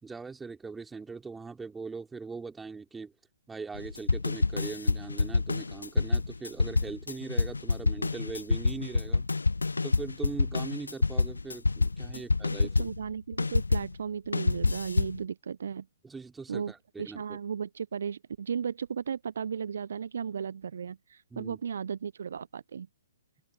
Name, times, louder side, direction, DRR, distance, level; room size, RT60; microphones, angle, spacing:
voice 1, 0.0-3.1 3.5-9.3 9.8-12.9 16.0-17.4 21.3-21.6, right 4 dB, 10° right, 3.5 m, -41 dB
sound 1, 3.7-13.9 14.3-15.2, left 3 dB, 75° left, 0.9 m, -27 dB
voice 2, 12.5-15.9 16.5-16.7 17.0-22.9, right 7 dB, 60° right, 0.7 m, -35 dB
open air
figure-of-eight pair, 125°, 0 cm